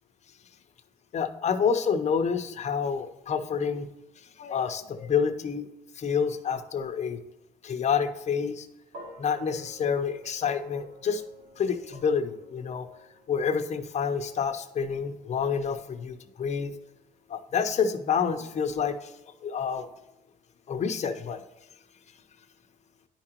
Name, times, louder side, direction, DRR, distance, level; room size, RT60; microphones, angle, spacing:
voice 1, 1.1-3.9 4.4-5.7 6.0-7.2 7.6-8.7 9.2-11.2 11.6-12.9 13.3-16.7 17.3-19.1 19.4-19.9 20.7-21.4, left 6 dB, 40° left, 8 dB, 0.8 m, -28 dB
sound 1, 8.9-17.3, equal, 85° right, 2.7 m, -52 dB
10.5 x 4.9 x 3.0 m, 0.95 s
cardioid pair, 105°, 17 cm